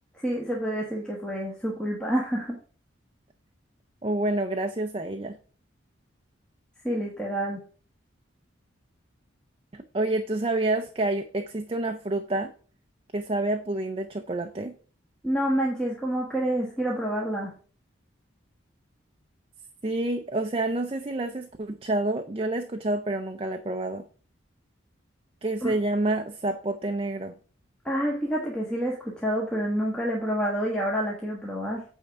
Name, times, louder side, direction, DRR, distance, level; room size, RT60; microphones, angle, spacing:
voice 1, 0.2-2.6 6.8-7.6 15.2-17.5 25.6-25.7 27.8-31.8, equal, 5° left, -3 dB, 1.2 m, -28 dB
voice 2, 4.0-5.4 9.7-12.5 13.1-14.8 19.8-24.0 25.4-27.3, right 2 dB, 30° right, 6 dB, 0.5 m, -28 dB
9.0 x 3.6 x 6.6 m, 0.41 s
head